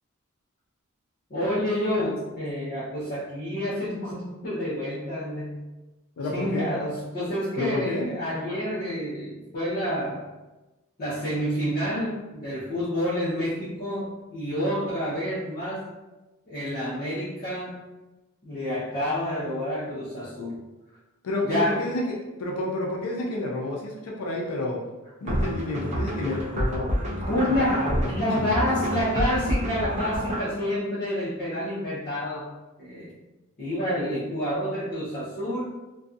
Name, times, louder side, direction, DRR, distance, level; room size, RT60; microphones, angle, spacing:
voice 1, 1.3-5.6 6.3-10.2 11.0-15.9 16.5-17.8 18.4-20.6 21.5-21.9 27.3-32.5 32.8-33.1 33.6-35.8, equal, 45° left, -11 dB, 0.7 m, -28 dB
voice 2, 6.2-6.7 7.6-8.1 21.2-24.8 25.2-26.9 27.3-28.7, left 1 dB, 85° left, -1 dB, 0.5 m, -30 dB
sound 1, 25.3-30.5, equal, 35° right, 0.4 m, -28 dB
2.5 x 2.3 x 2.5 m, 1.1 s
head